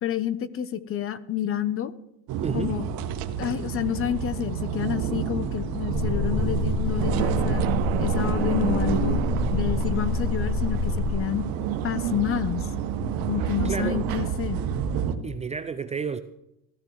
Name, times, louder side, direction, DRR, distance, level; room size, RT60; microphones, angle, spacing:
voice 1, 0.0-1.9 2.5-2.8 3.4-7.6 8.0-9.2 9.5-11.4 11.8-12.7 13.3-14.6, left 10 dB, 35° left, 16 dB, 0.9 m, -29 dB
sound 1, 2.3-15.1, right 7 dB, 60° right, 1.5 m, -30 dB
voice 2, 2.4-2.8 13.6-14.1 15.2-16.2, right 6 dB, 15° right, 10 dB, 0.4 m, -30 dB
sound 2, 5.9-11.1, left 5 dB, 55° left, 2.0 m, -28 dB
sound 3, 7.0-14.3, right 13 dB, 85° right, 1.1 m, -30 dB
15.5 x 14.0 x 4.7 m, 0.83 s
cardioid pair, 140°, 40 cm